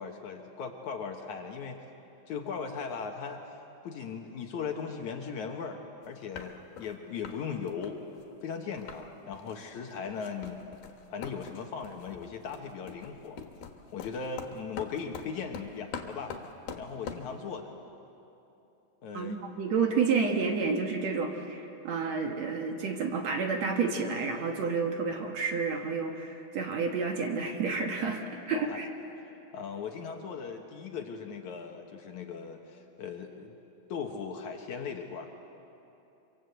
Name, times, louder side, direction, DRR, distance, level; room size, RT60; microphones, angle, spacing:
voice 1, 0.0-1.8 2.3-3.6 3.8-5.8 6.1-8.0 8.4-10.6 11.1-13.4 13.9-16.4 16.8-17.7 19.0-19.4 28.5-28.8 29.5-33.6 33.9-35.5, left 6 dB, 65° left, 3 dB, 2.4 m, -38 dB
sound 1, 6.0-6.1 6.3-6.9 7.2-7.4 7.7-9.0 9.3-9.6 9.9-17.3, left 6 dB, 85° left, 3.3 m, -44 dB
voice 2, 19.1-28.9, right 5 dB, 55° right, 3 dB, 2.4 m, -30 dB
26.0 x 25.0 x 7.9 m, 2.9 s
omnidirectional pair, 4.1 m